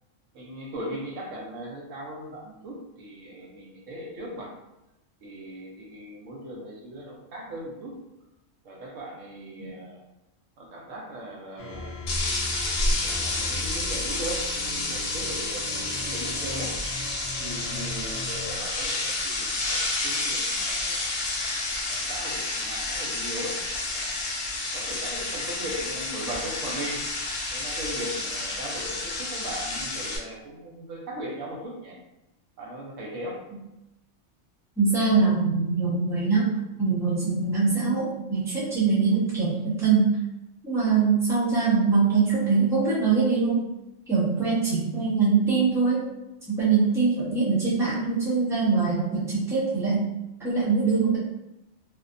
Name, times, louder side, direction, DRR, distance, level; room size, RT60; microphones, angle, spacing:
voice 1, 0.3-4.6 5.2-8.0 8.6-10.0 10.6-12.0 13.0-16.8 17.4-21.2 21.9-24.3 24.7-27.0 27.5-32.0 32.6-33.4, right 1 dB, 80° right, -2 dB, 1.0 m, -38 dB
sound 1, 11.6-18.6, left 1 dB, 90° left, 1.0 m, -38 dB
sound 2, 12.1-30.2, left 2 dB, 60° left, 0.7 m, -30 dB
voice 2, 34.8-36.5 36.8-40.1 40.6-43.6 44.1-46.0 46.5-50.0 50.4-51.2, right 4 dB, 5° right, -9 dB, 0.8 m, -23 dB
2.6 x 2.2 x 2.4 m, 0.92 s
omnidirectional pair, 1.3 m